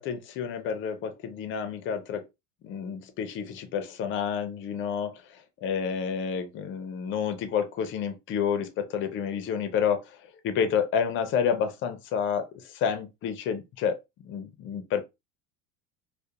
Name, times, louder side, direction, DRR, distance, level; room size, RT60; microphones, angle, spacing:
voice 1, 0.0-2.2 2.6-15.0, left 7 dB, 35° left, 0.4 m, -30 dB
2.3 x 2.1 x 2.7 m
cardioid pair, 145°, 37 cm